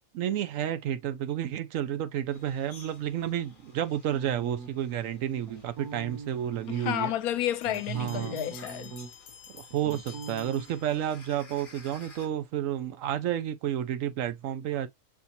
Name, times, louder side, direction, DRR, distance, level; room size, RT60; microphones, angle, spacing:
voice 1, 0.1-7.1 7.9-8.4 9.5-14.9, right 11 dB, 70° right, 0.9 m, -31 dB
sound 1, 2.3-12.3, left 3 dB, 35° left, 1.6 m, -55 dB
sound 2, 4.1-5.0 5.4-6.9 7.4-9.3 9.6-10.6, right 5 dB, 85° right, 1.6 m, -41 dB
voice 2, 6.7-8.9, left 12 dB, 75° left, 1.1 m, -31 dB
sound 3, 7.6-11.4, left 8 dB, 60° left, 0.6 m, -51 dB
7.0 x 2.8 x 2.6 m
omnidirectional pair, 1.6 m